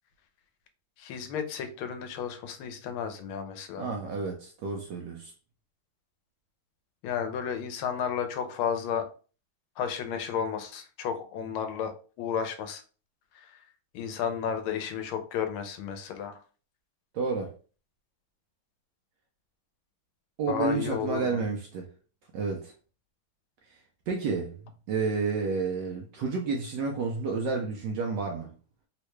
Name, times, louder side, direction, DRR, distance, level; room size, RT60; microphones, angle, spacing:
voice 1, 1.0-3.9 7.0-9.1 9.8-12.8 13.3-13.6 13.9-16.4 20.5-21.4, left 8 dB, 85° left, 1.5 m, -32 dB
voice 2, 3.8-5.3 17.1-17.5 20.4-21.9 22.3-22.7 23.7-23.8 24.1-24.6 24.9-28.5, right 4 dB, 75° right, 1.0 m, -30 dB
3.7 x 2.1 x 3.0 m
omnidirectional pair, 2.3 m